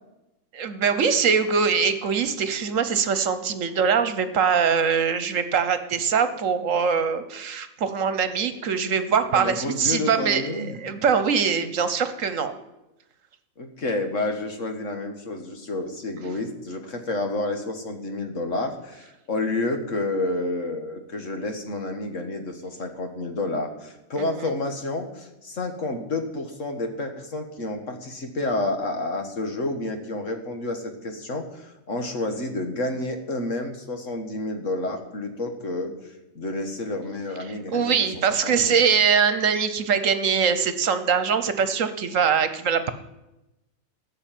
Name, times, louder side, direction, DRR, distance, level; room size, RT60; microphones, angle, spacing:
voice 1, 0.5-12.5 24.2-24.5 37.5-42.9, right 6 dB, 70° right, 11 dB, 1.3 m, -23 dB
voice 2, 9.3-10.8 13.6-38.0 38.3-38.8, left 2 dB, 65° left, 5 dB, 2.0 m, -30 dB
14.5 x 6.4 x 9.1 m, 0.96 s
omnidirectional pair, 1.4 m